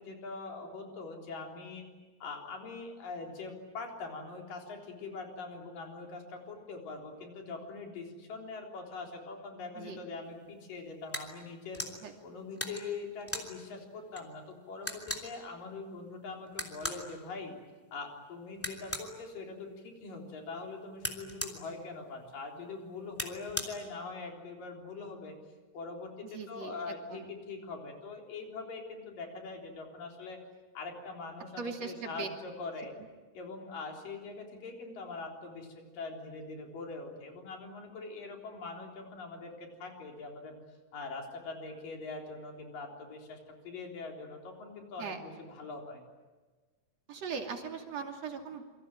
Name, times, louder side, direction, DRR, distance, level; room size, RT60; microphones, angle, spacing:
voice 1, 0.0-1.9 2.2-11.8 12.2-17.5 17.9-25.4 25.7-30.4 30.8-32.9 33.3-40.6 40.9-43.4 43.6-46.0, left 3 dB, 75° left, 2 dB, 5.4 m, -43 dB
sound 1, 11.1-11.3 11.7-11.9 12.6-13.5 14.2-14.3 14.5-14.6 14.8-15.3 16.5-17.0 18.6-19.1 21.0-21.6 23.1-23.7, equal, 5° left, 2.7 m, -37 dB
voice 2, 26.3-27.3 31.6-32.3 45.0-45.2 47.1-48.6, right 5 dB, 50° right, 3 dB, 3.7 m, -39 dB
27.5 x 24.5 x 9.0 m, 1.3 s
omnidirectional pair, 4.0 m